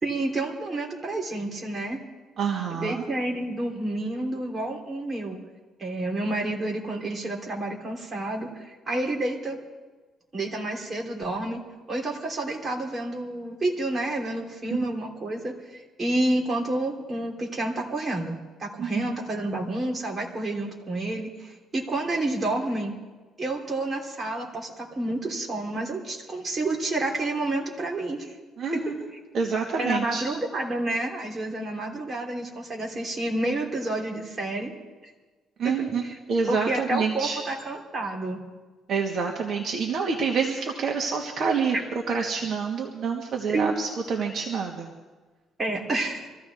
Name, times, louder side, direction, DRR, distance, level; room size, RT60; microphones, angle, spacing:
voice 1, 0.0-2.0 2.7-5.4 5.8-9.6 10.3-11.6 11.9-22.9 23.4-28.3 28.7-28.8 29.8-34.7 35.6-36.2 36.5-38.4 41.7-41.8 43.5-43.7 45.6-46.3, right 2 dB, 25° right, -1 dB, 3.3 m, -29 dB
voice 2, 2.4-3.0 18.8-19.0 28.6-28.9 29.3-30.2 35.6-37.4 38.9-41.7 42.1-44.9, right 5 dB, 50° right, 0 dB, 1.7 m, -27 dB
25.5 x 15.0 x 3.5 m, 1.3 s
cardioid pair, 130°, 0 cm